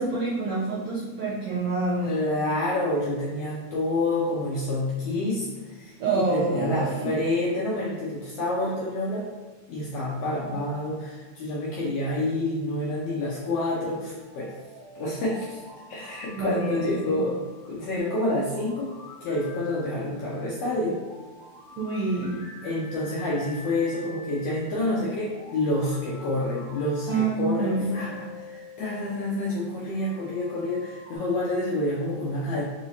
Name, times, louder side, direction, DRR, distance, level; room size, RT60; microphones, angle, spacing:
voice 1, 0.0-2.1 6.0-7.1 16.4-17.2 21.8-22.3 27.1-27.9, right 3 dB, 80° right, -7 dB, 1.3 m, -27 dB
voice 2, 2.0-5.9 6.3-9.3 9.7-14.5 14.9-15.6 15.9-17.3 17.6-18.9 19.2-21.0 22.6-32.6, left 1 dB, 75° left, -5 dB, 1.5 m, -28 dB
sound 1, 14.0-31.2, left 2 dB, 45° left, 1.9 m, -47 dB
4.7 x 3.0 x 2.7 m, 1.3 s
omnidirectional pair, 3.4 m